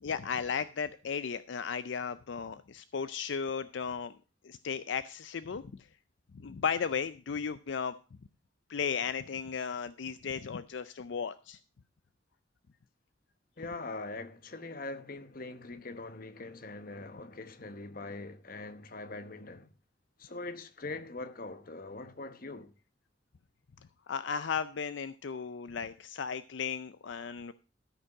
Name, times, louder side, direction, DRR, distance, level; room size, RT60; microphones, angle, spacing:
voice 1, 0.0-4.1 4.4-5.6 6.3-8.0 8.7-11.6 24.1-27.5, left 6 dB, 75° left, 0.5 m, -35 dB
voice 2, 13.6-19.7 20.2-22.7, left 3 dB, 50° left, 1.0 m, -42 dB
13.5 x 5.4 x 6.3 m
head